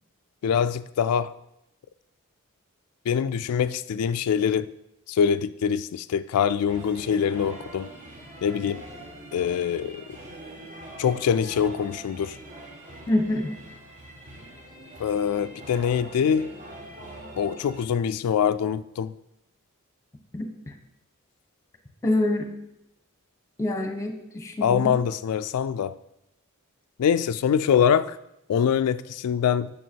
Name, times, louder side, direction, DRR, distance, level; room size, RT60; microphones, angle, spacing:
voice 1, 0.4-1.4 3.1-4.7 5.1-7.9 8.4-8.8 9.3-10.0 11.0-12.4 15.0-16.5 17.4-19.1 24.6-25.9 27.0-28.2 28.5-29.7, left 7 dB, 90° left, 12 dB, 0.3 m, -24 dB
sound 1, 6.7-17.8, right 1 dB, 35° right, 1.4 m, -43 dB
voice 2, 13.1-13.5 20.3-20.5 22.0-22.5 23.6-24.9, left 1 dB, 15° left, 6 dB, 1.0 m, -25 dB
9.1 x 6.5 x 4.5 m, 0.84 s
head